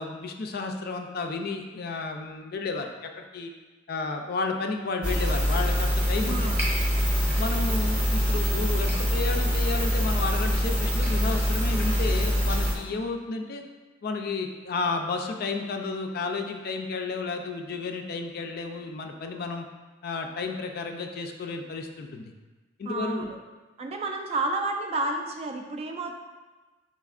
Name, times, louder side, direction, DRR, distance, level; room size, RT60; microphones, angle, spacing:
voice 1, 0.0-3.5 3.9-6.5 7.4-13.6 14.0-19.6 20.0-22.3 22.8-23.3, left 3 dB, 50° left, 4 dB, 0.4 m, -32 dB
sound 1, 5.0-12.7, equal, 10° right, 0.7 m, -24 dB
voice 2, 6.2-6.7 22.8-23.4 23.8-26.1, right 2 dB, 30° right, 4 dB, 0.3 m, -31 dB
4.2 x 4.2 x 2.4 m, 1.3 s
head